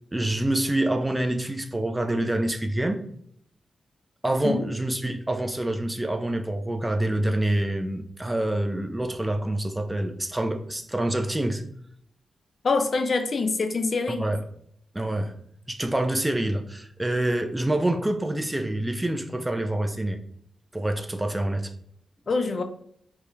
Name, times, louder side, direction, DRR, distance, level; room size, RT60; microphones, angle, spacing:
voice 1, 0.1-3.0 4.2-11.6 14.1-14.4 14.9-15.3 15.7-20.2 20.7-21.7, right 1 dB, 15° right, 5 dB, 0.4 m, -26 dB
voice 2, 12.6-14.3 22.3-22.6, left 3 dB, 55° left, 6 dB, 0.3 m, -25 dB
2.2 x 2.2 x 3.0 m, 0.67 s
cardioid pair, 55°, 0 cm